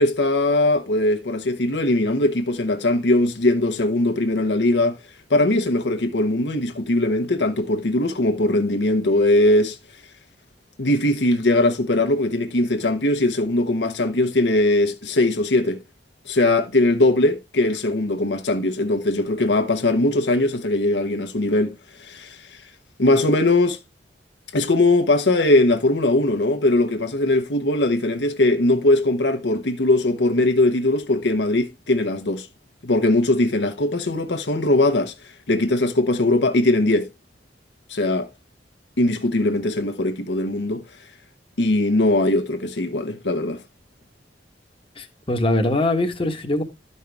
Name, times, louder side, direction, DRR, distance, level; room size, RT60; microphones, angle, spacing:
voice 1, 0.0-5.0 5.3-9.8 10.8-15.8 16.2-21.7 22.0-22.6 23.0-23.8 24.5-32.5 32.8-35.1 35.5-37.1 37.9-38.3 39.0-40.8 41.6-43.6, left 2 dB, 75° left, 1.1 m, -20 dB
voice 2, 45.0-46.6, left 1 dB, 30° left, 1.1 m, -22 dB
12.0 x 5.5 x 3.4 m
head